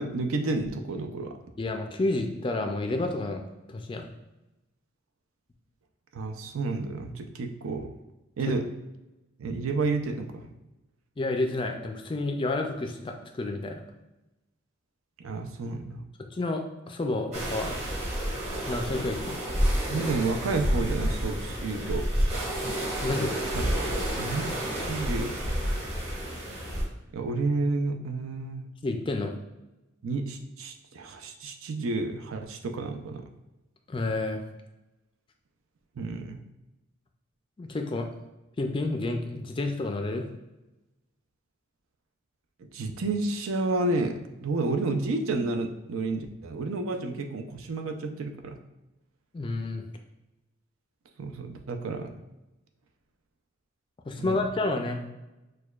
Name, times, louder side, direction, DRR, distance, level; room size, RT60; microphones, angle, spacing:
voice 1, 0.0-1.4 6.1-7.9 8.4-8.7 9.4-10.5 15.2-16.0 19.9-22.1 23.5-23.7 24.2-25.3 27.1-28.6 30.0-33.3 36.0-36.4 42.6-48.6 51.2-52.1 54.2-54.4, right 3 dB, 80° right, 5 dB, 0.5 m, -30 dB
voice 2, 1.6-4.1 8.5-8.6 11.2-13.8 16.3-17.8 18.7-19.4 23.0-23.4 28.8-29.4 33.9-34.4 37.6-38.1 38.6-40.3 49.3-49.8 54.1-55.0, left 2 dB, 25° left, 4 dB, 0.3 m, -30 dB
sound 1, 17.3-26.8, equal, 30° right, 1.1 m, -29 dB
6.4 x 2.2 x 2.3 m, 1.0 s
head